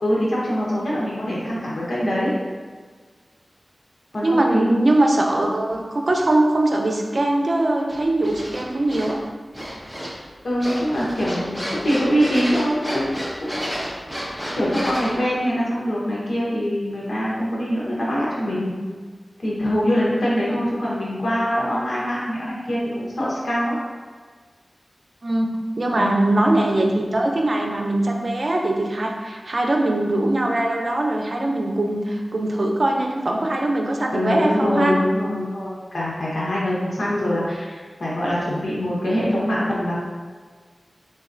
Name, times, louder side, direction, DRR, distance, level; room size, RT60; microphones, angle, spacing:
voice 1, 0.0-2.3 4.1-4.7 10.4-13.6 14.3-18.7 19.4-23.7 25.9-26.2 34.1-40.0, equal, 80° left, -6 dB, 1.0 m, -23 dB
voice 2, 4.2-9.2 20.5-20.6 25.2-25.5 25.8-34.9, right 1 dB, 55° right, 1 dB, 0.6 m, -21 dB
sound 1, 7.9-9.1 9.5-10.3 10.6-15.1, equal, 15° left, 1.1 m, -31 dB
4.0 x 4.0 x 2.5 m, 1.5 s
wide cardioid pair, 60°, 0 cm